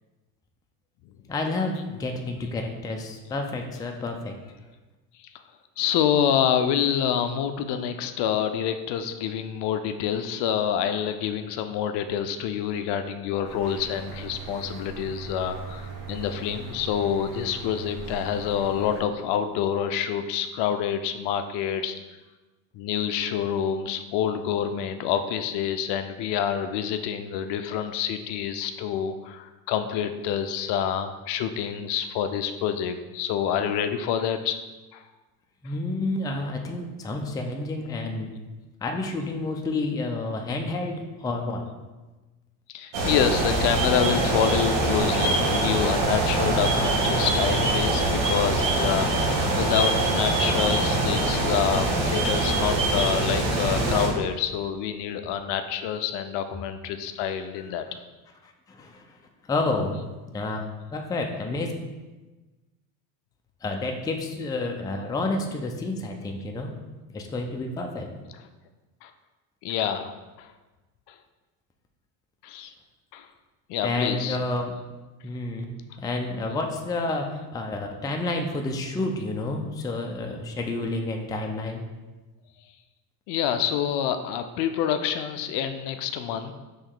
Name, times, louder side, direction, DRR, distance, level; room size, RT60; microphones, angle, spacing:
voice 1, 1.3-4.3 35.6-38.3 38.8-41.7 57.6-57.7 58.4-59.2 59.5-60.0 60.3-60.6 60.9-61.7 63.6-66.7 67.1-68.1 73.8-74.7 75.2-75.7 76.0-81.8, left 2 dB, 10° left, 2 dB, 0.4 m, -30 dB
voice 2, 5.8-22.0 22.7-34.6 34.9-35.0 42.7-57.8 69.0-69.1 69.6-70.5 71.1-71.2 72.4-72.7 73.1-73.3 73.7-74.4 83.3-86.6, left 9 dB, 60° left, 8 dB, 0.5 m, -27 dB
sound 1, 13.4-19.0, right 5 dB, 45° right, 1.1 m, -39 dB
sound 2, 42.9-54.1, right 2 dB, 65° right, 1.2 m, -24 dB
4.3 x 3.1 x 3.7 m, 1.2 s
supercardioid pair, 85°, 46 cm